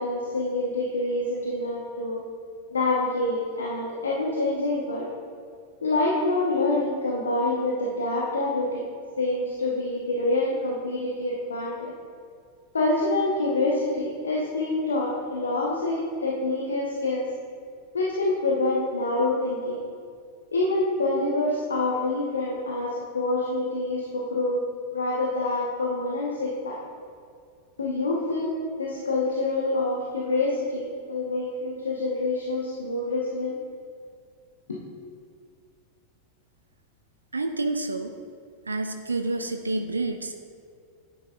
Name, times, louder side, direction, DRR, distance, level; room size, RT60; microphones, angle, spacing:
voice 1, 0.0-2.2 2.7-5.1 5.8-8.8 9.2-11.9 12.7-17.3 17.9-19.8 20.5-24.6 24.9-26.8 27.8-28.5 28.8-33.6 34.7-34.8, left 2 dB, 70° left, -3 dB, 1.1 m, -26 dB
voice 2, 37.3-38.1 38.7-40.4, right 2 dB, 80° right, 7 dB, 0.4 m, -28 dB
10.0 x 8.9 x 2.5 m, 2.2 s
figure-of-eight pair, 90°, 0 cm